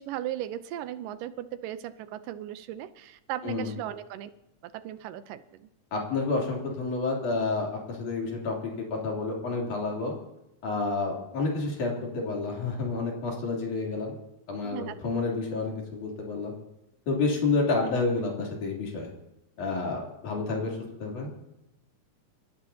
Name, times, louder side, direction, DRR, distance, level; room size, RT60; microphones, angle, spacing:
voice 1, 0.0-4.3 4.6-5.7 14.6-15.0, right 12 dB, 85° right, 12 dB, 2.4 m, -37 dB
voice 2, 5.9-8.6 8.9-10.1 10.6-14.2 14.5-16.5 17.1-19.1 19.6-21.3, left 3 dB, 65° left, -2 dB, 4.7 m, -29 dB
27.5 x 14.0 x 2.8 m, 0.93 s
omnidirectional pair, 3.8 m